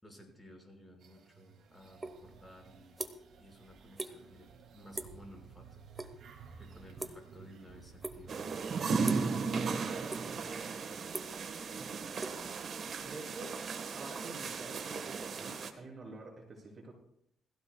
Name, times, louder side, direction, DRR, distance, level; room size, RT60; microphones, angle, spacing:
voice 1, 0.0-4.5 4.7-5.8 6.6-8.4, equal, 10° left, 1 dB, 5.5 m, -56 dB
sound 1, 1.0-10.0, right 6 dB, 70° right, 2.5 m, -55 dB
sound 2, 2.0-2.2 2.5-3.4 3.7-4.1 4.4-4.7 4.9-5.3 5.6-6.1 6.4-7.5 8.0-8.4 9.0-9.4 9.8-10.5 10.8-13.0, right 2 dB, 20° right, 1.1 m, -42 dB
sound 3, 8.3-15.7, right 5 dB, 55° right, 1.4 m, -36 dB
voice 2, 13.0-13.6 13.9-16.9, right 2 dB, 35° right, -1 dB, 6.7 m, -48 dB
20.5 x 15.5 x 2.3 m, 0.73 s
cardioid pair, 90°, 0 cm